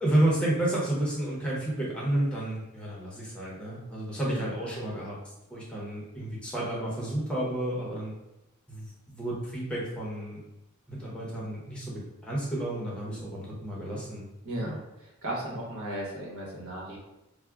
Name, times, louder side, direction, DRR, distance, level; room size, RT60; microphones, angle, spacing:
voice 1, 0.0-5.2 5.5-8.1 8.7-10.4 10.9-14.3 14.6-14.8, right 1 dB, 5° left, -6 dB, 0.7 m, -31 dB
voice 2, 15.0-17.0, right 1 dB, 80° right, -4 dB, 1.0 m, -35 dB
4.7 x 2.1 x 2.3 m, 0.93 s
head